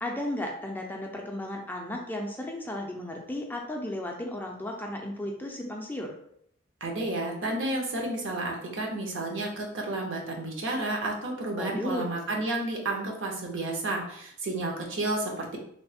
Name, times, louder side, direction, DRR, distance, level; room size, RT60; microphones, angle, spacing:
voice 1, 0.0-6.1 11.5-12.1, left 1 dB, 10° left, 1 dB, 0.4 m, -34 dB
voice 2, 6.8-15.6, right 2 dB, 65° right, 0 dB, 0.8 m, -31 dB
3.2 x 2.1 x 4.0 m, 0.69 s
head